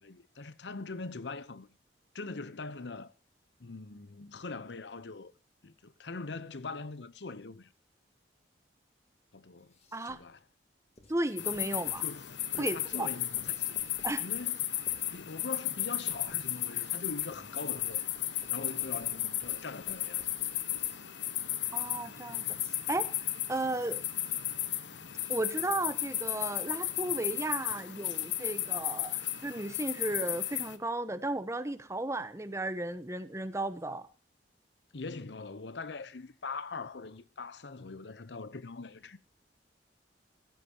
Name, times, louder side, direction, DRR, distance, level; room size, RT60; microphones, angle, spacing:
voice 1, 0.0-1.7 2.1-3.1 3.6-5.3 5.6-7.7 9.3-9.7 10.0-10.4 12.0-12.2 12.6-13.7 14.2-14.6 15.1-18.0 18.5-20.3 34.9-39.2, left 3 dB, 75° left, 0.8 m, -42 dB
Writing, 9.6-10.3 11.0-21.3, left 1 dB, 35° left, 3.0 m, -59 dB
voice 2, 11.1-12.1 12.6-13.1 14.0-14.3 21.7-22.5 22.9-23.1 23.5-24.0 25.3-34.1, right 2 dB, 15° right, 1.0 m, -34 dB
sound 1, 11.4-30.8, left 13 dB, 90° left, 1.3 m, -34 dB
15.0 x 13.5 x 2.9 m
head